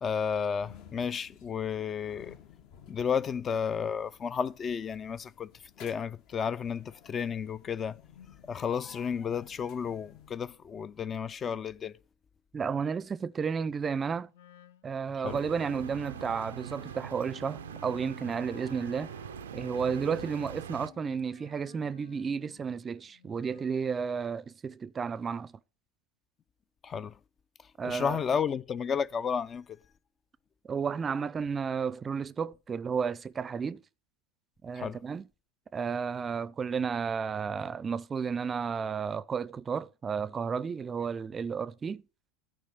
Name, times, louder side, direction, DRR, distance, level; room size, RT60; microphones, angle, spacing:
voice 1, 0.0-2.4 2.9-5.5 5.8-8.0 8.5-11.9 15.2-15.4 26.8-27.2 27.8-29.8 34.7-35.0, left 7 dB, 30° left, 0.4 m, -32 dB
sound 1, 0.5-10.7, left 9 dB, 55° left, 1.1 m, -55 dB
voice 2, 12.5-14.3 14.8-19.1 19.5-25.5 27.8-28.2 30.7-33.8 34.6-35.2 35.7-42.0, right 6 dB, 25° right, 0.5 m, -32 dB
Wind instrument woodwind instrument, 14.3-23.8, left 9 dB, 80° left, 0.6 m, -55 dB
sound 2, 15.3-20.9, right 9 dB, 85° right, 0.4 m, -43 dB
11.5 x 5.0 x 6.6 m
hypercardioid pair, 90°, 0 cm